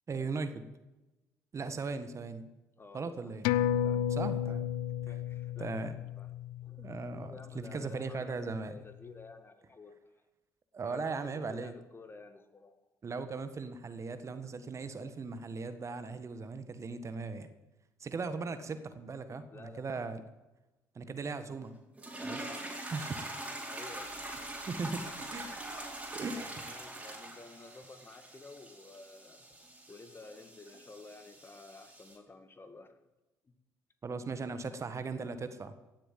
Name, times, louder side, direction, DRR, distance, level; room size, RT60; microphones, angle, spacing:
voice 1, 0.1-0.7 1.5-2.4 2.9-3.4 4.1-4.7 5.6-5.9 6.8-8.7 10.7-11.7 13.0-17.5 18.0-20.2 20.9-21.7 22.2-22.6 22.9-23.4 24.7-25.0 25.3-25.5 26.1-26.5 34.0-35.8, right 4 dB, 40° right, 11 dB, 1.5 m, -38 dB
voice 2, 2.8-3.4 3.8-4.6 5.1-6.3 6.6-10.2 10.8-12.8 19.5-20.0 23.7-24.2 24.8-25.2 25.5-25.7 26.3-29.5 29.9-33.0 33.4-33.5, left 3 dB, 30° left, 9 dB, 1.9 m, -52 dB
sound 1, 3.4-8.4 8.7-8.8, left 10 dB, 75° left, 0.5 m, -33 dB
sound 2, 22.0-32.2, right 1 dB, 15° right, 4.8 m, -44 dB
sound 3, 23.9-29.2 29.4-29.5, right 6 dB, 75° right, 3.2 m, -57 dB
17.0 x 7.7 x 7.5 m, 1.0 s
hypercardioid pair, 55°, 8 cm